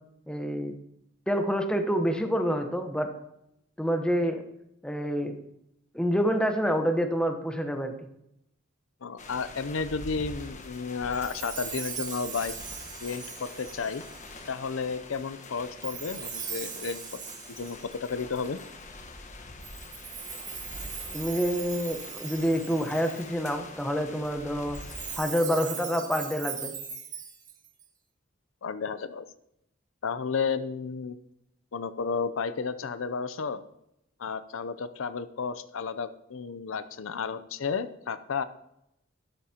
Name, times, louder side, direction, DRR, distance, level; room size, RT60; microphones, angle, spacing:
voice 1, 0.3-0.7 1.3-3.1 3.8-4.4 4.8-5.3 5.9-7.9 21.1-24.8 25.2-26.7, equal, 5° left, 5 dB, 1.0 m, -27 dB
voice 2, 9.0-12.5 13.0-14.0 14.5-17.0 17.5-18.6 28.6-29.3 30.0-31.2 31.7-33.6 34.2-38.4, left 5 dB, 75° left, 12 dB, 0.6 m, -32 dB
sound 1, 9.2-25.2, left 2 dB, 35° left, 1.3 m, -45 dB
Chime, 11.1-14.5 15.8-18.7 19.6-23.4 24.7-27.8, right 7 dB, 40° right, 1.8 m, -40 dB
12.5 x 12.0 x 2.9 m, 0.80 s
head